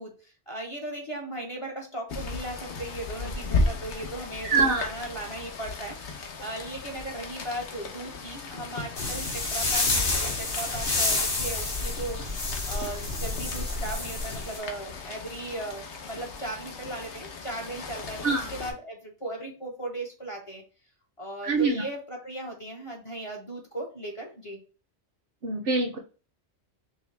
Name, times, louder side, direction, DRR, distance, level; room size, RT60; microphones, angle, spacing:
voice 1, 0.0-6.0 6.4-20.6 21.2-24.6, right 1 dB, 30° left, -1 dB, 0.8 m, -37 dB
Rain, 2.1-18.7, left 3 dB, 70° left, 1.1 m, -36 dB
voice 2, 4.4-4.8 18.2-18.5 21.4-21.8 25.4-26.0, right 4 dB, 55° right, 3 dB, 0.8 m, -24 dB
sound 1, 9.0-14.6, left 2 dB, 50° left, 1.3 m, -29 dB
5.5 x 2.1 x 3.2 m, 0.37 s
omnidirectional pair, 1.2 m